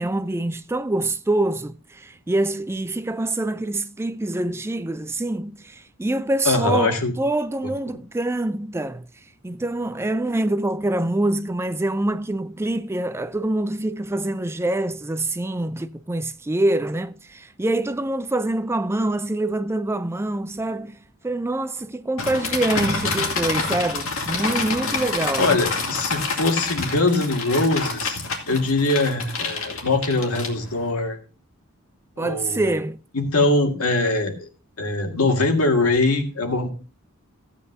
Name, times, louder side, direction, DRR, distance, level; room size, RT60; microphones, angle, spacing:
voice 1, 0.0-9.1 9.4-21.0 21.2-25.6 32.2-33.0, right 2 dB, 10° right, 0.4 m, -25 dB
voice 2, 6.5-7.1 25.4-31.2 32.2-32.6 33.1-34.5 34.8-36.7, left 2 dB, 90° left, 1.9 m, -22 dB
sound 1, 22.2-30.9, left 4 dB, 65° left, 2.3 m, -27 dB
15.0 x 8.7 x 2.7 m
head